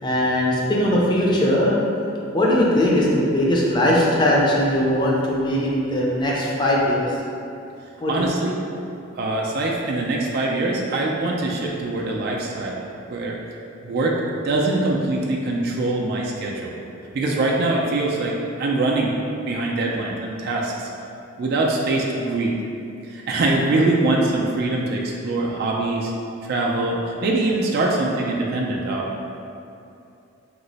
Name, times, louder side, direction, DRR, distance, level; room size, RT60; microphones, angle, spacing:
voice 1, 0.0-1.8 2.3-7.1 8.0-8.1, left 1 dB, 25° left, -4 dB, 0.5 m, -20 dB
voice 2, 8.1-8.6 9.2-12.8 13.1-13.4 13.8-14.2 14.4-16.7 17.1-19.1 19.5-20.9 21.4-22.6 23.1-26.1 26.4-29.2, right 2 dB, 55° right, -2 dB, 0.3 m, -23 dB
3.0 x 2.0 x 3.9 m, 2.6 s
head